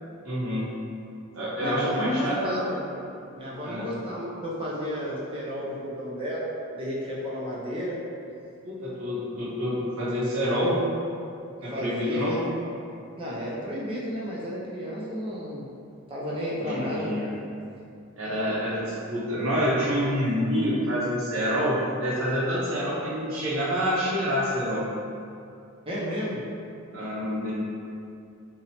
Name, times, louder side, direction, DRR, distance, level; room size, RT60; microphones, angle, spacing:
voice 1, 0.2-0.7 1.3-2.5 3.6-3.9 8.6-10.8 11.6-12.4 16.6-17.3 18.2-24.9 26.9-27.5, equal, 90° right, -7 dB, 0.7 m, -27 dB
voice 2, 1.6-2.8 3.4-8.0 11.7-12.4 13.2-15.7 16.1-17.1 25.9-26.4, equal, 25° right, -6 dB, 0.4 m, -32 dB
2.8 x 2.0 x 2.8 m, 2.5 s
head